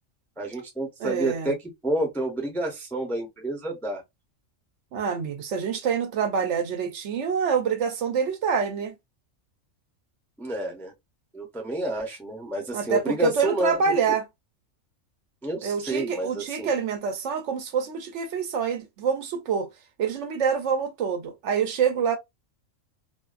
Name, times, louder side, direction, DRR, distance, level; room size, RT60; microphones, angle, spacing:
voice 1, 0.4-1.5 1.8-4.0 10.4-10.9 11.3-13.9 15.4-16.7, right 1 dB, ahead, 0.5 m, -29 dB
voice 2, 1.0-1.5 4.9-8.9 12.7-14.3 15.6-19.7 20.0-22.2, right 6 dB, 70° right, 0.8 m, -26 dB
2.6 x 2.3 x 2.3 m
omnidirectional pair, 1.4 m